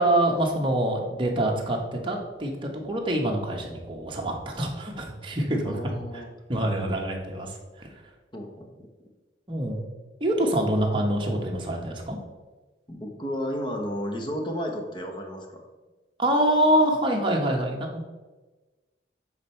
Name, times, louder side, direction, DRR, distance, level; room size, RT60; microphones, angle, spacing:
voice 1, 0.0-5.7 6.1-6.2 6.5-7.9 9.5-9.8 10.2-12.2 16.2-18.0, right 1 dB, 25° right, 0 dB, 1.0 m, -25 dB
voice 2, 5.6-6.3 8.3-8.9 12.9-15.6, equal, 25° left, 3 dB, 0.9 m, -33 dB
7.4 x 4.1 x 4.3 m, 1.2 s
head